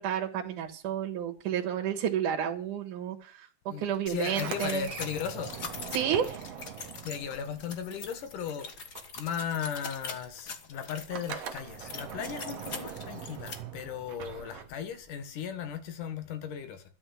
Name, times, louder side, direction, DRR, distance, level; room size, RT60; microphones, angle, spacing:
voice 1, 0.0-4.9 5.9-6.4, right 9 dB, 80° right, 2.9 m, -31 dB
voice 2, 3.7-5.5 7.0-8.7 9.2-16.8, left 8 dB, 80° left, 3.1 m, -36 dB
sound 1, 4.1-13.5, left 5 dB, 40° left, 1.6 m, -43 dB
Sliding door, 4.2-8.5 8.7-15.1, right 8 dB, 60° right, 2.1 m, -42 dB
12.5 x 10.0 x 6.3 m
omnidirectional pair, 3.6 m